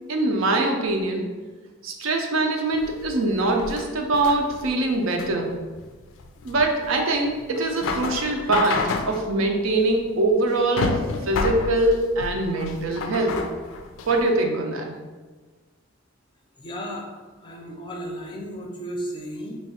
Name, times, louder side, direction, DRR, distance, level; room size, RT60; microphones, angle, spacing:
voice 1, 0.1-1.3 1.8-5.6 6.4-13.4 14.1-14.9, right 2 dB, 85° right, 3 dB, 0.5 m, -23 dB
sound 1, 2.7-14.3, left 4 dB, 85° left, 0.4 m, -31 dB
voice 2, 16.6-17.2 17.4-19.6, equal, 25° left, 0 dB, 0.4 m, -34 dB
3.2 x 2.3 x 4.2 m, 1.3 s
head